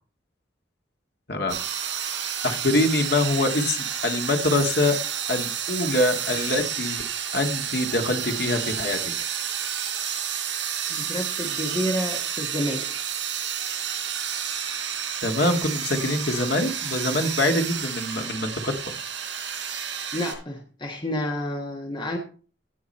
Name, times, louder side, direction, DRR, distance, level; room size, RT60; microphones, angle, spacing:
sound 1, 1.5-20.3, right 8 dB, 80° right, 5.5 m, -30 dB
voice 1, 2.4-5.0 5.3-7.0 7.3-9.0 15.2-18.9, left 2 dB, 65° left, 4 dB, 1.8 m, -24 dB
voice 2, 10.9-12.9 20.1-22.2, equal, 25° left, 2 dB, 1.6 m, -29 dB
17.0 x 6.1 x 4.3 m, 0.37 s
head